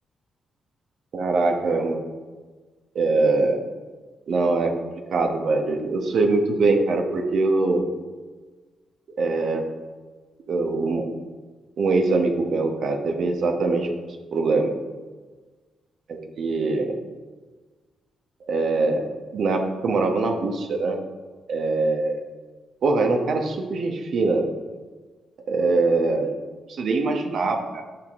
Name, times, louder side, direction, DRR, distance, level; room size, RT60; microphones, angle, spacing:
voice 1, 1.1-2.0 2.9-3.6 4.3-7.8 9.2-9.6 10.5-11.1 11.8-13.9 14.3-14.7 16.1-16.9 18.5-21.0 21.5-22.2 22.8-24.4 25.5-26.4 26.7-27.8, right 3 dB, 65° right, 4 dB, 1.2 m, -23 dB
10.5 x 5.9 x 3.6 m, 1.4 s
hypercardioid pair, 45°, 0 cm